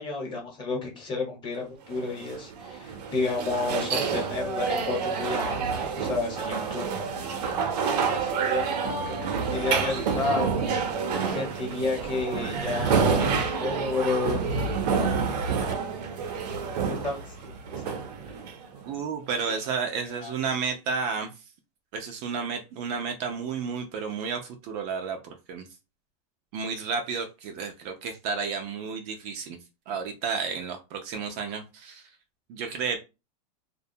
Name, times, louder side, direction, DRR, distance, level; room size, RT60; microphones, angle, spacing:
voice 1, 0.0-7.1 8.1-10.6 11.3-14.4 15.5-15.9 16.3-18.0 18.3-18.4 19.5-19.6 20.0-20.3, left 3 dB, 25° left, 0 dB, 0.9 m, -32 dB
sound 1, 1.9-18.9, right 5 dB, 75° right, 0.7 m, -28 dB
voice 2, 18.9-21.3 21.9-25.7 26.5-29.6 29.9-32.1 32.5-33.0, right 5 dB, 40° right, 4 dB, 0.4 m, -32 dB
2.4 x 2.2 x 2.7 m, 0.27 s
supercardioid pair, 150°, 21 cm